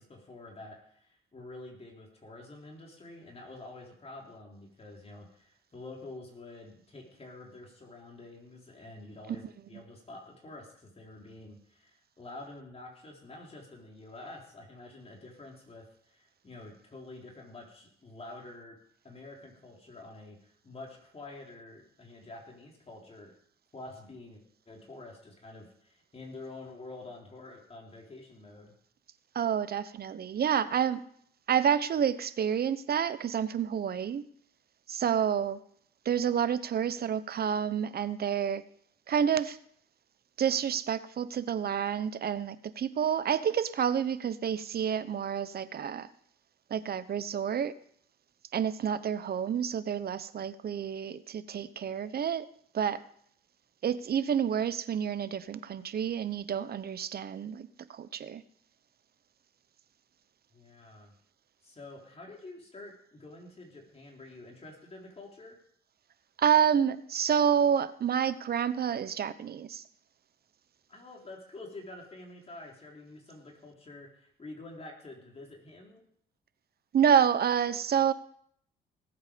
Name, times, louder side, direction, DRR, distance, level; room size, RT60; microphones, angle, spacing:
voice 1, 0.0-18.8 19.0-23.3 23.7-28.7 60.5-61.1 61.6-65.6 70.9-76.0, left 2 dB, 30° left, 0 dB, 3.7 m, -48 dB
voice 2, 29.3-31.0 31.5-34.3 34.9-35.6 36.0-38.6 39.1-39.6 40.4-46.1 46.7-47.7 48.5-52.5 52.7-53.0 53.8-58.4 66.4-69.8 76.9-78.1, right 8 dB, 50° right, 14 dB, 0.9 m, -29 dB
18.5 x 8.1 x 5.2 m, 0.65 s
cardioid pair, 90°, 20 cm